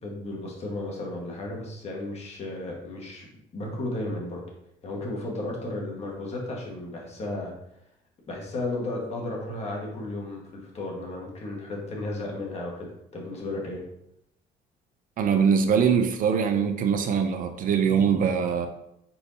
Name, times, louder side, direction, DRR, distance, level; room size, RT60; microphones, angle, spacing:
voice 1, 0.0-3.3 3.5-4.4 4.8-7.5 8.3-13.8, left 2 dB, 40° left, -2 dB, 1.5 m, -34 dB
voice 2, 15.2-18.7, right 6 dB, 55° right, 7 dB, 0.5 m, -22 dB
4.5 x 4.3 x 2.7 m, 0.80 s
cardioid pair, 110°, 17 cm